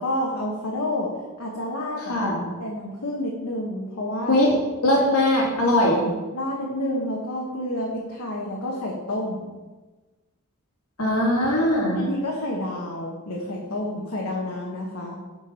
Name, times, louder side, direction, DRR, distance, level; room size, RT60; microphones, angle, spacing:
voice 1, 0.0-1.1 1.4-2.3 2.6-4.4 5.8-9.5 11.9-15.2, left 1 dB, 65° left, -2 dB, 1.2 m, -29 dB
voice 2, 2.1-2.4 4.3-4.5 4.8-6.0 11.0-12.0, left 1 dB, 85° left, -2 dB, 2.3 m, -20 dB
8.8 x 4.7 x 5.6 m, 1.2 s
head